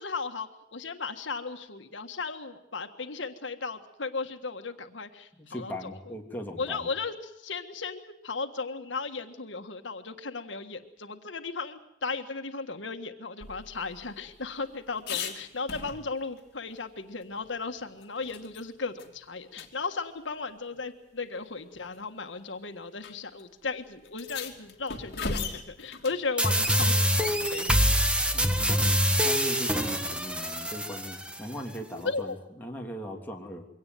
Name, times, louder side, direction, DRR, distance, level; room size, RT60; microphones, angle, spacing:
voice 1, 0.0-5.9 6.6-27.7 32.0-32.3, left 4 dB, 80° left, 7 dB, 1.6 m, -36 dB
voice 2, 5.3-6.9 19.6-19.7 28.3-33.7, equal, 10° left, 0 dB, 3.2 m, -39 dB
sound 1, 13.4-16.4 16.8-16.9 17.2-18.7 19.0-19.1 19.5-19.7 20.7-20.8 21.7-22.0 23.0-23.1 23.4-23.5 24.1-26.3 28.5-29.0, left 4 dB, 60° left, 2.8 m, -39 dB
sound 2, 26.4-31.4, equal, 5° right, 1.7 m, -25 dB
23.5 x 18.0 x 9.4 m, 0.85 s
head